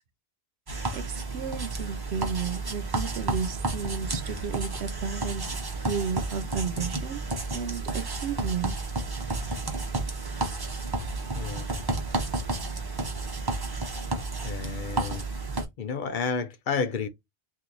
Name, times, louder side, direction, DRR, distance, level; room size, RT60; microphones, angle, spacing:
sound 1, 0.7-15.7, right 3 dB, 25° right, 0.7 m, -31 dB
voice 1, 0.9-5.5 5.9-7.2 7.5-8.8, right 6 dB, 85° right, 1.0 m, -33 dB
voice 2, 11.3-11.7 14.4-15.3 15.8-17.1, left 5 dB, 60° left, 0.6 m, -31 dB
3.0 x 2.6 x 3.8 m
omnidirectional pair, 1.1 m